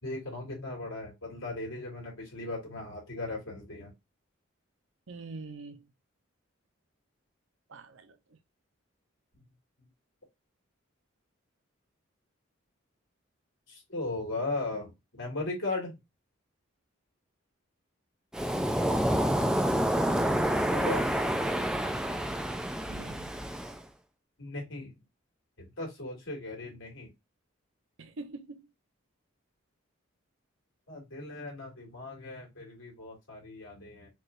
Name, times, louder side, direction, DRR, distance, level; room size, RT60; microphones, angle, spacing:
voice 1, 0.0-3.9 13.7-14.9 15.2-15.9 20.7-21.1 24.4-24.9 25.6-27.1 30.9-34.1, left 2 dB, 70° left, 2.5 m, -37 dB
voice 2, 5.1-5.9 7.7-8.4 22.9-23.4 28.0-28.7, right 3 dB, 70° right, 0.7 m, -44 dB
Waves surf, 18.3-23.8, equal, 5° right, 0.3 m, -28 dB
4.8 x 3.2 x 2.5 m
head